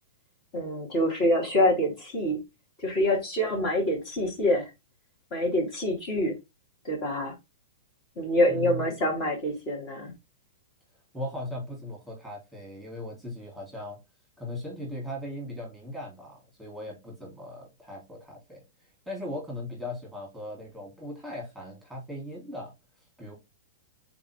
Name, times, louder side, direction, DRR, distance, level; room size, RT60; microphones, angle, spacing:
voice 1, 0.5-2.4 2.8-4.7 5.3-6.4 6.8-7.3 8.2-10.1, left 1 dB, 35° left, 2.0 m, -26 dB
voice 2, 8.5-8.8 11.1-14.0 14.4-18.6 19.1-22.7 23.2-23.3, left 1 dB, ahead, 2.2 m, -38 dB
3.9 x 3.5 x 3.5 m
figure-of-eight pair, 105°, 0 cm